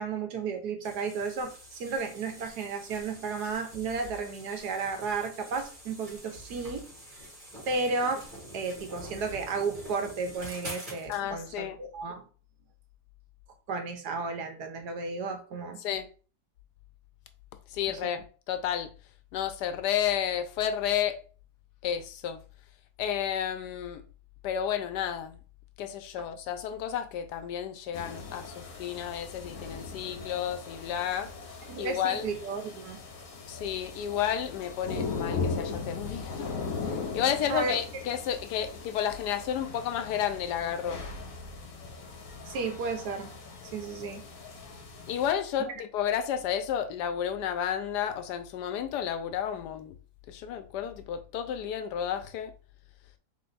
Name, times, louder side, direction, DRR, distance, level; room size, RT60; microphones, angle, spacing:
voice 1, 0.0-6.8 7.7-8.2 8.5-12.2 13.7-15.8 17.9-18.1 31.7-33.0 37.5-37.8 42.5-43.3 43.7-44.2 45.6-45.7, right 4 dB, 75° right, 1.4 m, -33 dB
sound 1, 0.8-11.2, equal, 30° right, 2.1 m, -46 dB
voice 2, 11.1-11.8 15.8-16.1 17.7-18.9 19.3-21.2 21.8-22.4 23.0-24.0 24.4-25.4 25.8-31.3 31.8-32.3 33.5-36.5 37.1-41.0 45.1-50.0 50.3-52.5, left 9 dB, 85° left, 1.2 m, -31 dB
sound 2, 27.9-45.3, left 4 dB, 65° left, 1.4 m, -39 dB
3.4 x 3.3 x 4.0 m
omnidirectional pair, 1.7 m